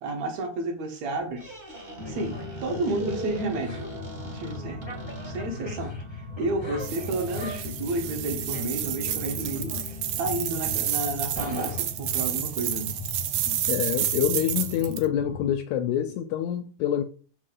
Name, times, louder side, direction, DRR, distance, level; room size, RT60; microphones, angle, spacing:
voice 1, 0.0-1.4 2.0-3.8 4.2-5.9 6.4-9.8 10.2-12.9 13.5-13.6, right 2 dB, 65° right, 2.3 m, -31 dB
Squeak, 1.1-5.7, left 1 dB, 25° right, 0.9 m, -44 dB
sound 1, 2.0-15.6, left 2 dB, 40° left, 0.4 m, -37 dB
sound 2, 6.8-15.1, right 12 dB, 85° right, 1.4 m, -30 dB
voice 2, 13.7-17.0, left 11 dB, 80° left, 1.7 m, -26 dB
6.4 x 5.2 x 3.8 m
omnidirectional pair, 3.7 m